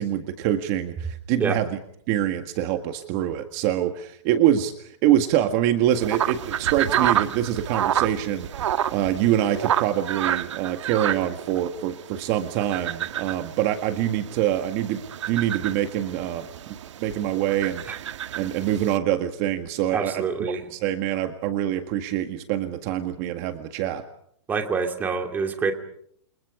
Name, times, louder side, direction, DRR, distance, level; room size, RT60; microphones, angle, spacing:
voice 1, 0.0-1.8 2.1-18.1 18.4-24.0, right 11 dB, 30° right, 7 dB, 1.8 m, -25 dB
sound 1, 5.9-19.0, right 10 dB, 70° right, 1.7 m, -29 dB
voice 2, 19.9-20.6 24.5-25.7, right 5 dB, 10° right, 5 dB, 2.5 m, -26 dB
29.0 x 28.5 x 5.0 m, 0.67 s
supercardioid pair, 170°, 16 cm